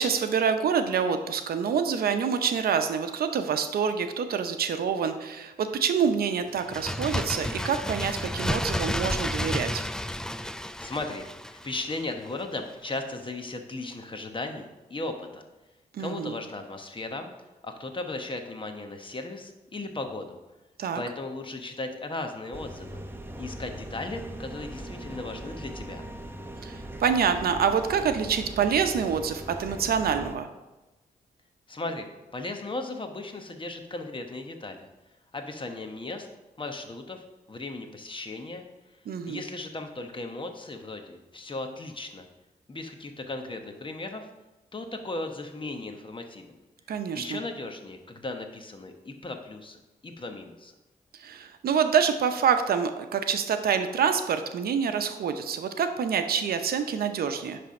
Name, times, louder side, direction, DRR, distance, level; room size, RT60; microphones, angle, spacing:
voice 1, 0.0-9.8 15.9-16.3 20.8-21.0 26.6-30.5 39.1-39.4 46.9-47.4 51.2-57.6, right 7 dB, 75° right, 8 dB, 0.7 m, -26 dB
Bird, 6.6-12.1 12.4-12.5, left 1 dB, 5° left, 0.4 m, -31 dB
voice 2, 10.8-11.3 11.5-15.4 16.0-17.3 17.6-20.4 20.9-23.0 23.4-26.0 31.7-32.1 32.3-34.9 35.3-36.3 36.6-38.6 39.3-42.3 42.7-44.3 44.7-46.6 47.1-50.7, left 2 dB, 30° left, 5 dB, 1.1 m, -36 dB
sound 1, 22.5-30.3, right 1 dB, 15° right, 0.8 m, -40 dB
10.0 x 3.4 x 5.3 m, 1.1 s
cardioid pair, 60°, 16 cm